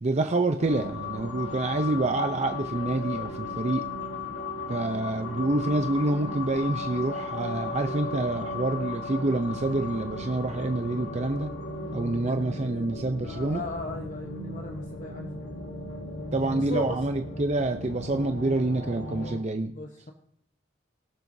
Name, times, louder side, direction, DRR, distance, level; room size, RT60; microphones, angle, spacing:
voice 1, 0.0-3.9 4.7-11.5 11.9-13.6 16.3-19.7, right 2 dB, 40° right, 6 dB, 0.6 m, -27 dB
sound 1, 0.6-19.4, left 2 dB, 75° left, 1.8 m, -36 dB
voice 2, 12.2-15.6 16.6-16.9 19.7-20.1, left 2 dB, 45° left, 2 dB, 1.0 m, -38 dB
23.0 x 7.6 x 2.7 m, 0.73 s
head